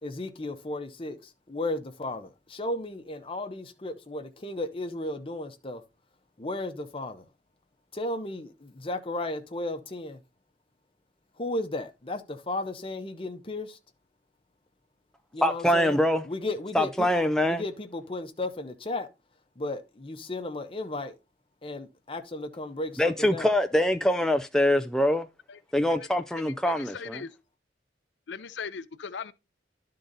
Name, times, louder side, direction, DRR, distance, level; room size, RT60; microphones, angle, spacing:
voice 1, 0.0-5.8 6.4-7.3 7.9-10.2 11.4-13.8 15.3-16.0 16.2-19.1 19.6-21.2 21.6-23.5, left 2 dB, 30° left, 0.9 m, -34 dB
voice 2, 15.4-16.2 16.7-17.6 23.0-25.3 25.7-27.2, left 1 dB, 5° left, 0.3 m, -24 dB
voice 3, 26.3-27.4 28.3-29.3, left 6 dB, 80° left, 0.5 m, -39 dB
11.5 x 3.8 x 4.0 m
head